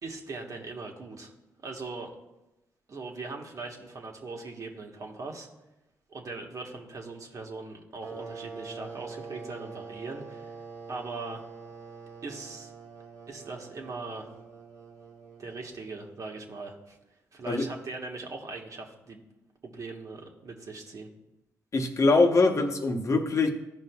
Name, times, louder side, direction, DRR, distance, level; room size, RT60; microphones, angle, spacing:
voice 1, 0.0-1.3 1.6-2.1 2.9-5.5 6.1-10.5 10.9-11.4 12.2-12.7 13.3-14.3 15.4-17.0 17.3-19.2 19.6-21.1, right 3 dB, 50° right, 1 dB, 1.4 m, -40 dB
sound 1, 8.0-16.4, right 5 dB, 90° right, 2.3 m, -45 dB
voice 2, 21.7-23.5, left 3 dB, 45° left, 5 dB, 0.9 m, -23 dB
14.5 x 5.3 x 2.3 m, 0.96 s
supercardioid pair, 50°, 7 cm